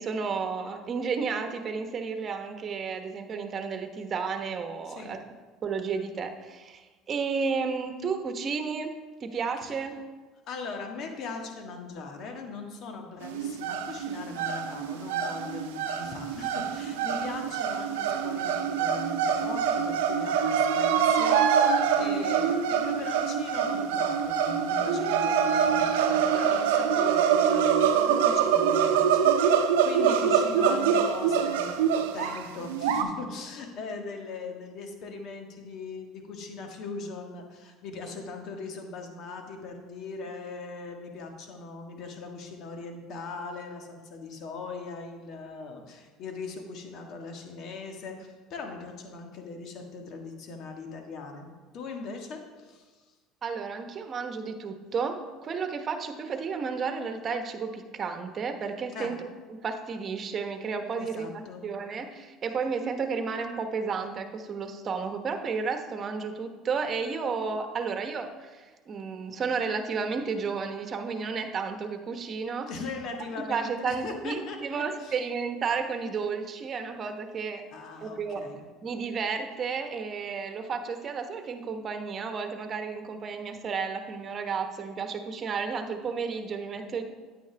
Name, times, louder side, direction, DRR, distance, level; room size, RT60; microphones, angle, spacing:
voice 1, 0.0-5.2 5.6-8.9 9.2-10.0 53.4-59.2 59.6-72.7 73.4-77.6 78.0-78.5 78.8-87.0, right 5 dB, 40° right, 7 dB, 1.1 m, -32 dB
voice 2, 10.5-51.5 51.7-53.0 58.9-59.1 61.0-61.6 72.7-74.6 75.0-75.2 77.7-78.6, left 4 dB, 60° left, 3 dB, 1.6 m, -40 dB
sound 1, 13.2-33.0, right 7 dB, 85° right, 0.7 m, -25 dB
9.6 x 9.2 x 3.4 m, 1.4 s
hypercardioid pair, 75°, 0 cm